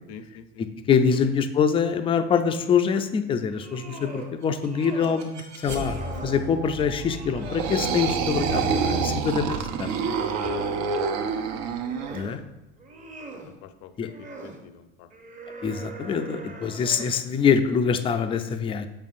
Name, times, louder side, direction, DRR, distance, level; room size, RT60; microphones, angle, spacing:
voice 1, 0.1-0.8 1.1-1.3 10.2-11.3 13.4-15.1, left 7 dB, 70° left, 10 dB, 0.6 m, -47 dB
voice 2, 0.9-6.0 6.2-10.0 12.1-12.4 14.0-14.1 15.6-18.9, left 6 dB, 20° left, 8 dB, 0.3 m, -24 dB
sound 1, 3.4-4.3 4.6-5.3 5.6-6.5 7.0-9.0 9.5-10.9 11.5-12.4 12.8-13.5 14.0-14.6 15.1-17.3, right 3 dB, 25° right, 0.8 m, -42 dB
sound 2, 4.2-13.2, left 1 dB, 85° right, 1.4 m, -40 dB
sound 3, 7.4-12.2, right 5 dB, 60° right, 0.6 m, -27 dB
7.1 x 5.4 x 2.5 m, 0.97 s
supercardioid pair, 115°, 30 cm